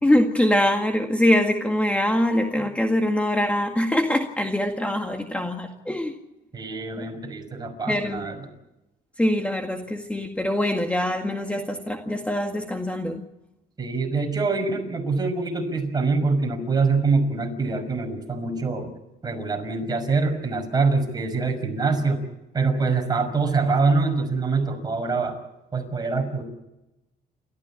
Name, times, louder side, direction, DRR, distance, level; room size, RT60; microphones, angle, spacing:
voice 1, 0.0-6.2 7.0-7.1 7.9-8.3 9.2-13.2, left 1 dB, 10° left, 3 dB, 2.0 m, -23 dB
voice 2, 6.5-8.4 13.8-18.9 19.2-22.2 22.5-25.4 25.7-26.4, right 4 dB, 25° right, 4 dB, 5.8 m, -24 dB
29.0 x 14.5 x 8.6 m, 0.97 s
cardioid pair, 110°, 17 cm